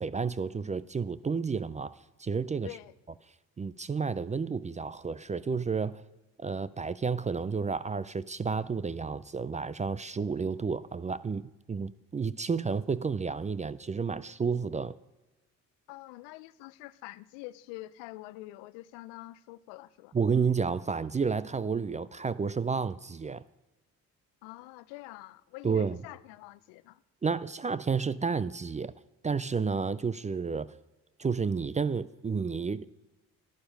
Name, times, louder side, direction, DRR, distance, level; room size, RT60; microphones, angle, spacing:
voice 1, 0.0-2.7 3.6-6.0 6.4-15.0 20.1-23.4 25.6-26.0 27.2-28.9 29.2-30.7 31.2-32.8, right 5 dB, 20° right, 0.3 m, -31 dB
voice 2, 2.6-2.9 15.9-20.1 24.4-27.0, left 18 dB, 85° left, 0.6 m, -46 dB
12.0 x 11.5 x 5.2 m
hypercardioid pair, 55°, 41 cm